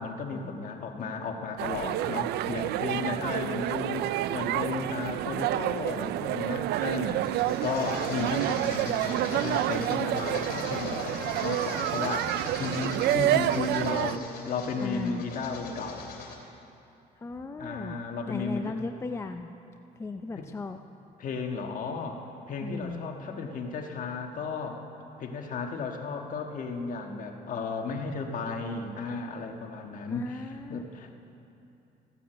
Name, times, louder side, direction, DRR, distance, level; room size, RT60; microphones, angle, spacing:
voice 1, 0.0-16.1 17.6-18.8 20.4-20.5 21.2-24.8 25.2-31.1, left 4 dB, 50° left, 3 dB, 1.5 m, -34 dB
sound 1, 1.6-14.2, right 14 dB, 75° right, 0.4 m, -29 dB
sound 2, 6.7-16.4, left 5 dB, 70° left, 2.9 m, -41 dB
voice 2, 14.8-15.2 17.2-19.5 20.0-20.8 22.6-23.0 30.1-31.1, left 3 dB, 15° left, 6 dB, 0.5 m, -37 dB
14.5 x 9.1 x 7.8 m, 2.8 s
cardioid pair, 110°, 17 cm